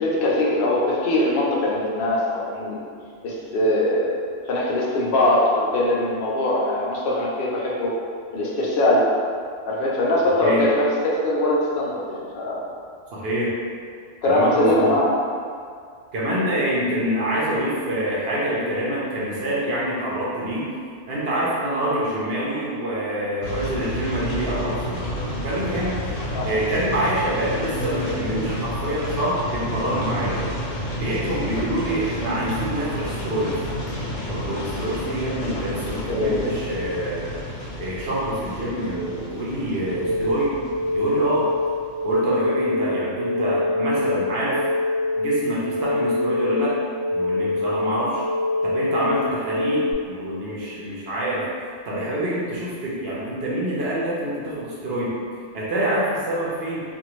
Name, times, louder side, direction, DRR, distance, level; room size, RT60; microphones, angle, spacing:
voice 1, 0.0-2.8 3.2-8.0 8.3-9.1 9.7-10.9 11.2-12.6 14.2-15.1 26.3-26.6 36.1-36.5, left 1 dB, 55° left, -5 dB, 0.7 m, -22 dB
voice 2, 13.1-13.5 14.2-14.9 16.1-20.7 21.1-25.1 25.4-26.0 26.4-30.4 30.9-33.5 34.3-37.3 37.8-40.5 40.9-41.5 42.0-44.6 45.2-46.7 47.1-48.2 48.6-51.4 51.9-55.1 55.5-56.8, right 1 dB, 60° right, -7 dB, 0.9 m, -26 dB
sound 1, 23.4-42.4, equal, 85° left, 1.0 m, -31 dB
sound 2, 39.9-49.9, left 2 dB, 25° right, 0.3 m, -25 dB
2.6 x 2.5 x 3.0 m, 2.2 s
omnidirectional pair, 1.3 m